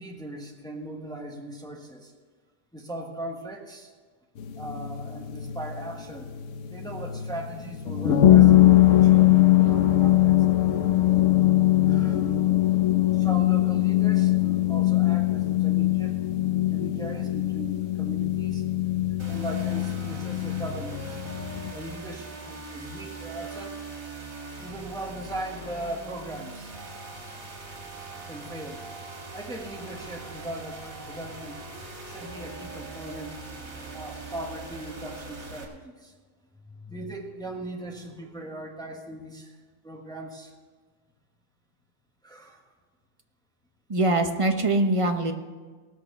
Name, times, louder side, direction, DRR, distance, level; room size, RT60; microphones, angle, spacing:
voice 1, 0.0-2.1 2.7-3.9 4.6-6.3 6.6-10.3 11.8-12.3 13.1-16.2 16.5-18.6 19.3-21.2 21.7-23.8 24.6-26.7 28.3-28.9 29.3-31.7 32.0-33.4 33.9-36.1 36.5-39.6 39.8-40.5 42.2-42.6, right 1 dB, 5° left, 1 dB, 1.1 m, -39 dB
sound 1, 4.4-21.7, left 14 dB, 65° left, 1.1 m, -21 dB
sound 2, 19.2-35.6, right 3 dB, 70° right, 2.4 m, -41 dB
voice 2, 43.9-45.3, right 2 dB, 30° right, 5 dB, 0.7 m, -23 dB
19.0 x 6.5 x 5.5 m, 1.4 s
omnidirectional pair, 1.5 m